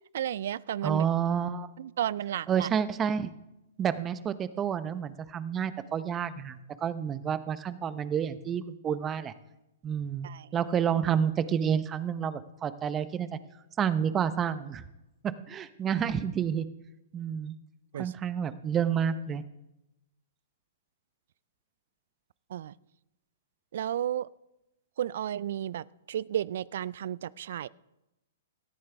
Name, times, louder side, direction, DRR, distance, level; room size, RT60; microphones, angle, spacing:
voice 1, 0.1-1.1 1.8-2.7 10.2-10.5 17.9-18.1 22.5-22.7 23.7-24.3 25.0-27.7, right 10 dB, 60° right, 22 dB, 0.4 m, -33 dB
voice 2, 0.8-1.7 2.5-3.3 3.8-9.3 9.8-13.4 13.8-14.8 15.2-16.7 17.1-17.6 17.9-19.4, right 8 dB, 20° right, 14 dB, 0.9 m, -29 dB
18.0 x 14.0 x 3.5 m, 0.96 s
hypercardioid pair, 120°, 0 cm